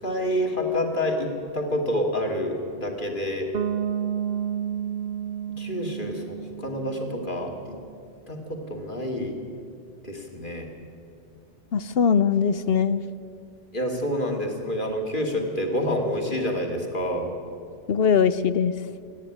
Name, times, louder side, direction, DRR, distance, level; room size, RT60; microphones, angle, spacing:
voice 1, 0.0-3.5 5.6-7.8 8.3-9.4 10.0-10.7 13.7-17.3, left 1 dB, 45° left, 2 dB, 2.7 m, -28 dB
Bass guitar, 3.5-7.4, right 9 dB, 55° right, 1.1 m, -31 dB
voice 2, 11.7-13.0 17.9-18.7, left 6 dB, 60° left, 15 dB, 0.8 m, -21 dB
26.5 x 10.5 x 10.0 m, 2.4 s
omnidirectional pair, 1.2 m